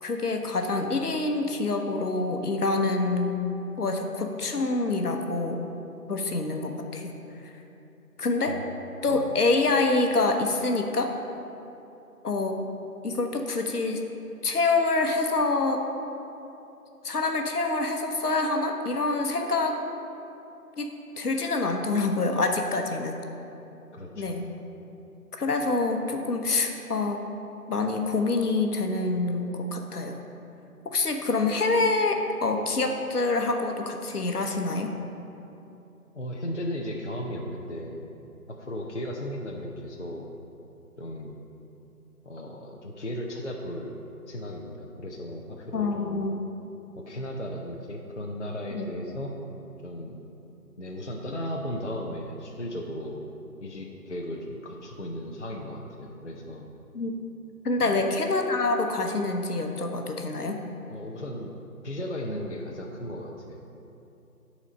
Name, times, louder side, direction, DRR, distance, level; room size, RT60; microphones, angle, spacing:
voice 1, 0.0-3.4 3.8-5.6 6.1-7.1 8.2-8.6 9.0-11.1 12.2-12.6 13.0-14.0 14.4-15.8 17.0-19.8 20.8-20.9 21.2-23.2 24.2-24.4 25.4-27.2 27.7-30.2 30.8-34.9 45.7-46.4 48.7-48.9 56.9-57.1 57.6-60.6, left 3 dB, 75° left, 4 dB, 0.9 m, -26 dB
voice 2, 23.9-24.4 36.1-38.1 38.5-40.2 41.0-41.4 42.2-46.2 47.0-49.3 49.8-50.2 50.8-53.3 53.6-56.7 57.8-58.1 60.9-63.7, left 1 dB, 50° left, -1 dB, 0.5 m, -36 dB
8.9 x 4.2 x 5.1 m, 2.9 s
figure-of-eight pair, 180°, 46 cm